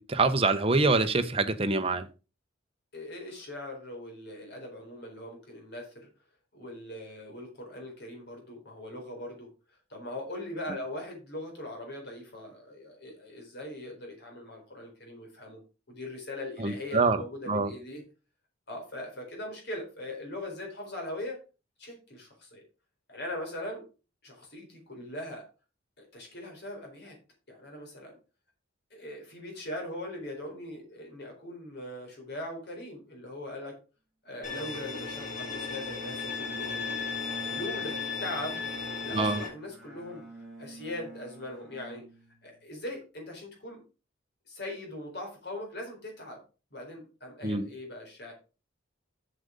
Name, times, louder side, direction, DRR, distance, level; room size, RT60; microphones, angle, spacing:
voice 1, 0.0-2.1 16.6-17.2 17.5-17.7 39.1-39.4 47.4-47.7, right 3 dB, 30° right, 0.9 m, -25 dB
voice 2, 2.9-6.1 6.5-9.5 9.9-15.6 15.9-18.0 18.7-21.4 21.8-22.7 23.1-23.8 24.2-25.5 26.0-27.2 27.5-28.1 28.9-33.8 34.2-37.0 37.3-38.6 39.0-42.0 42.4-43.8 44.5-46.4 46.7-48.3, left 1 dB, 55° left, 4.4 m, -40 dB
Bowed string instrument, 34.3-42.8, right 3 dB, ahead, 3.0 m, -46 dB
Bowed string instrument 2, 34.4-39.5, left 6 dB, 40° left, 2.8 m, -35 dB
7.7 x 6.8 x 5.1 m
head